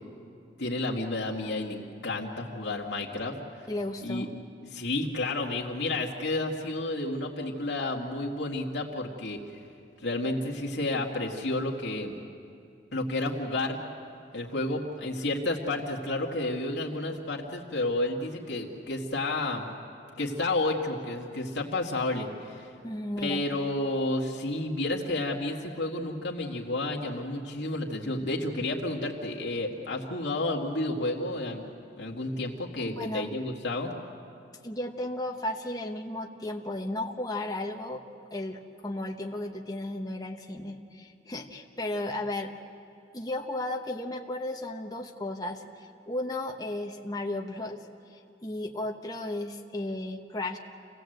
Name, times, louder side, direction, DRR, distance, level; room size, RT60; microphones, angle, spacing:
voice 1, 0.6-3.6 4.0-4.3 4.7-9.4 10.0-12.2 12.9-13.8 14.3-19.7 20.2-22.7 23.2-31.7 32.0-33.9, left 2 dB, 80° left, -1 dB, 2.1 m, -31 dB
voice 2, 3.7-4.3 22.8-23.6 32.9-33.3 34.6-38.0 38.3-42.5 43.1-47.8 48.1-50.6, left 1 dB, 20° left, 2 dB, 1.1 m, -34 dB
28.5 x 17.5 x 7.9 m, 2.6 s
head